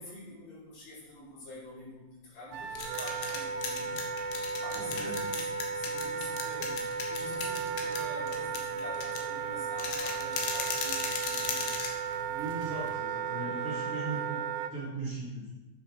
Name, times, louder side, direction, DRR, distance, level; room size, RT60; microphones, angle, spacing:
voice 1, 0.0-4.0 4.6-12.1, left 2 dB, 55° left, -8 dB, 6.0 m, -47 dB
sound 1, 2.5-12.9, left 6 dB, 90° left, 3.7 m, -38 dB
Wind instrument woodwind instrument, 2.5-14.7, right 6 dB, 80° right, 2.5 m, -35 dB
voice 2, 4.7-5.2 12.2-14.4 14.7-15.4, right 3 dB, 40° right, -6 dB, 2.3 m, -38 dB
9.5 x 7.3 x 6.2 m, 1.2 s
omnidirectional pair, 5.2 m